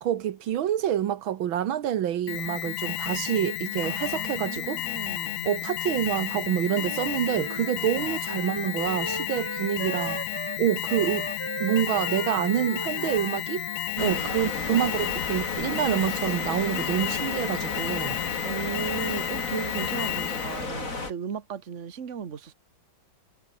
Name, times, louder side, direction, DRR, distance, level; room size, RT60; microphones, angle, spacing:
voice 1, 0.0-4.8 5.4-10.2 10.6-11.3 11.6-13.7 14.0-18.2, right 11 dB, 80° right, 1.9 m, -27 dB
Alarm, 2.3-20.7, left 17 dB, 80° left, 1.3 m, -32 dB
voice 2, 3.8-5.5 8.0-8.1 14.0-14.2 18.4-22.5, right 7 dB, 40° right, 1.7 m, -36 dB
Wind instrument woodwind instrument, 6.6-15.0, right 3 dB, 20° right, 0.8 m, -38 dB
sound 1, 14.0-21.1, left 3 dB, 40° left, 3.9 m, -33 dB
omnidirectional pair, 2.2 m